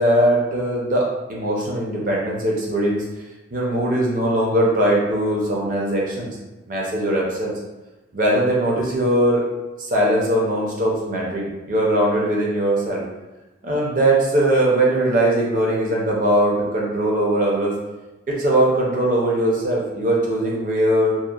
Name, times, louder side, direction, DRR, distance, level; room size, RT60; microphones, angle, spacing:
voice 1, 0.0-3.1 3.5-6.4 6.7-7.5 8.1-9.5 9.8-13.0 13.6-17.8 18.3-21.1, right 1 dB, 45° right, -3 dB, 0.5 m, -20 dB
2.7 x 2.0 x 2.3 m, 1.1 s
head